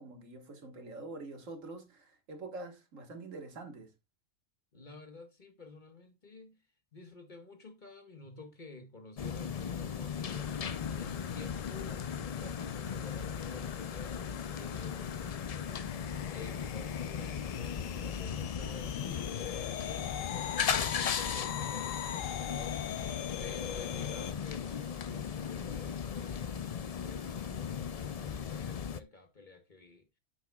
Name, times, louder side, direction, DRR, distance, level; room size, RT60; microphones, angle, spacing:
voice 1, 0.0-3.9, right 2 dB, 75° right, 1.9 m, -45 dB
voice 2, 4.7-6.6 6.9-30.1, left 3 dB, 40° left, 1.4 m, -50 dB
sound 1, 9.2-29.0, left 7 dB, 60° left, 0.4 m, -37 dB
sound 2, 10.3-24.3, left 10 dB, 80° left, 1.1 m, -43 dB
9.8 x 8.1 x 2.3 m
omnidirectional pair, 1.3 m